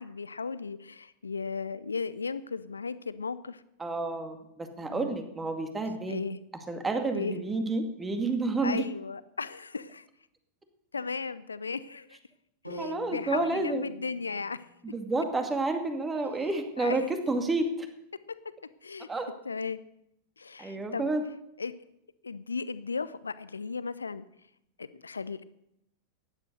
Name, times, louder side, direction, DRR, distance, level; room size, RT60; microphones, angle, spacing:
voice 1, 0.0-3.6 4.9-5.2 6.1-6.4 7.1-7.4 8.6-10.1 10.9-12.2 12.7-14.7 16.8-17.1 18.8-19.1 19.4-19.8 20.4-21.1 21.6-21.7 22.2-24.3 24.8-25.4, left 4 dB, 75° left, 16 dB, 0.7 m, -36 dB
voice 2, 3.8-6.2 6.7-8.9 12.8-13.9 14.8-17.9 19.1-19.3 20.6-21.2, right 3 dB, 15° right, 6 dB, 2.2 m, -30 dB
sound 1, 12.6-16.7, left 1 dB, 90° right, 4.8 m, -47 dB
15.5 x 11.0 x 6.5 m, 0.81 s
figure-of-eight pair, 90°, 0 cm